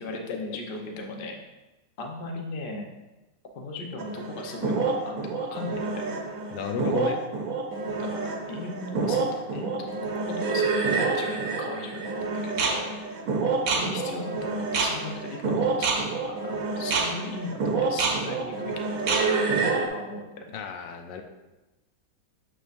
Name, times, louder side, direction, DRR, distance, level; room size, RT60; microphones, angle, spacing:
voice 1, 0.0-1.4 2.0-2.8 3.5-6.1 8.0-12.0 12.4-12.9 13.7-15.9 16.3-18.7 19.2-19.4 19.8-20.2 20.5-20.6, left 2 dB, 50° left, 1 dB, 0.6 m, -37 dB
sound 1, 4.0-19.9, right 4 dB, 60° right, 1.1 m, -27 dB
voice 2, 6.5-7.2 20.5-21.2, left 7 dB, 75° left, 5 dB, 1.2 m, -32 dB
6.7 x 6.3 x 2.5 m, 1.1 s
omnidirectional pair, 2.0 m